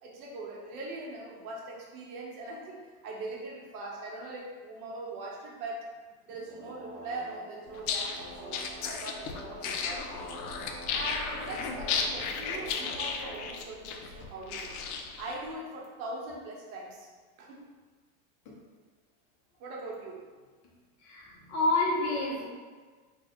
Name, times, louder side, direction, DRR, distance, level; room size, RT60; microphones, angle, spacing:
voice 1, 0.0-5.8 6.3-10.2 10.9-14.7 15.2-17.1 17.4-17.6 19.6-20.3, right 2 dB, 70° right, -2 dB, 1.0 m, -41 dB
sound 1, 6.1-14.2, right 1 dB, 15° right, 0.6 m, -47 dB
sound 2, 7.7-15.3, left 5 dB, 75° left, 0.6 m, -34 dB
voice 2, 21.0-22.5, left 2 dB, 40° left, -4 dB, 0.8 m, -28 dB
2.6 x 2.3 x 3.5 m, 1.4 s
supercardioid pair, 130°, 46 cm